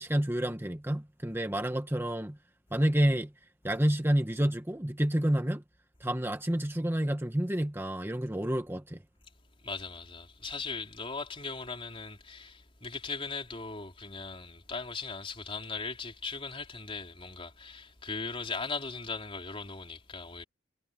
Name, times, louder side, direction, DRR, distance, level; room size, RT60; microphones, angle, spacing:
voice 1, 0.0-2.4 2.7-3.3 3.6-5.6 6.0-9.0, right 1 dB, 10° right, 1.1 m, -29 dB
voice 2, 9.6-20.4, left 4 dB, 30° left, 4.1 m, -39 dB
head